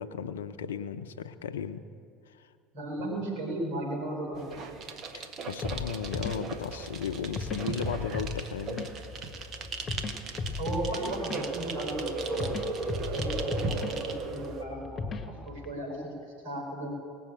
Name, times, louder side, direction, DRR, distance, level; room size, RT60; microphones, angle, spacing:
voice 1, 0.0-1.8 2.3-2.5 3.0-3.1 5.1-8.9, left 7 dB, 80° left, 11 dB, 0.6 m, -35 dB
voice 2, 2.7-4.6 10.6-12.9 13.1-16.0 16.4-16.9, right 1 dB, 70° right, 0 dB, 4.9 m, -36 dB
sound 1, 4.3-14.6, right 4 dB, 45° right, 1.3 m, -36 dB
sound 2, 5.6-15.7, left 3 dB, 30° left, 1.4 m, -37 dB
19.0 x 7.0 x 8.7 m, 2.5 s
hypercardioid pair, 70°, 0 cm